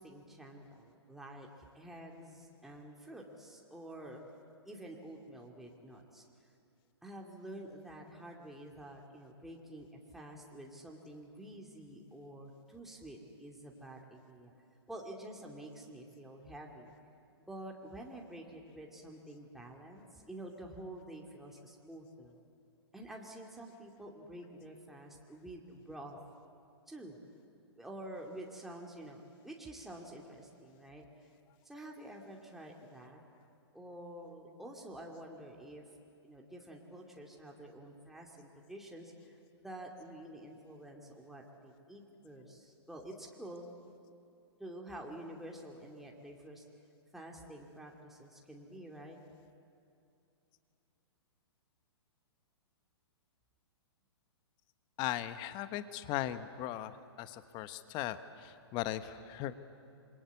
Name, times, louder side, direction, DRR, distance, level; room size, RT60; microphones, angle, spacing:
voice 1, 0.0-4.3 4.6-6.5 7.0-14.5 14.9-16.9 17.5-22.3 22.9-26.2 26.9-27.2 27.8-31.0 31.6-33.2 33.7-35.8 36.2-43.8 44.6-46.6 47.1-49.2, right 1 dB, ahead, -1 dB, 2.6 m, -49 dB
voice 2, 55.0-59.5, left 13 dB, 35° left, 12 dB, 1.1 m, -38 dB
27.0 x 23.0 x 8.3 m, 2.6 s
hypercardioid pair, 120°, 14 cm